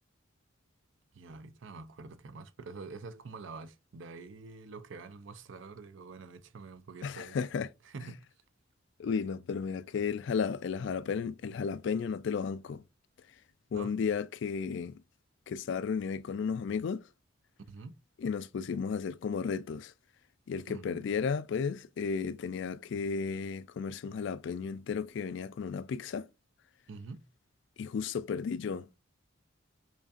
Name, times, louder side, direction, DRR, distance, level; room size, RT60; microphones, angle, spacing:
voice 1, 1.1-7.4 7.8-8.2 13.7-14.0 17.6-18.0 20.7-21.0 26.9-27.3, right 4 dB, 65° right, 0.5 m, -46 dB
voice 2, 7.0-7.7 9.0-12.8 13.7-15.0 15.5-17.1 18.2-19.9 20.5-26.3 27.8-29.1, left 6 dB, 60° left, 0.3 m, -34 dB
5.0 x 2.5 x 2.4 m
head